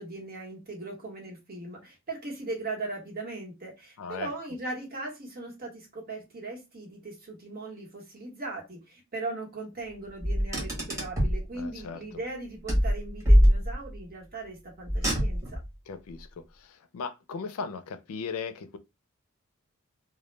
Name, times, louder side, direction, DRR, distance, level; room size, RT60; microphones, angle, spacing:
voice 1, 0.0-15.6, right 2 dB, 45° right, 1.1 m, -39 dB
voice 2, 4.0-4.3 11.5-12.2 15.9-18.8, left 5 dB, 90° left, 0.4 m, -38 dB
Car, 10.2-11.4 12.7-14.0 14.9-15.7, equal, 15° right, 1.0 m, -23 dB
2.2 x 2.1 x 3.1 m
head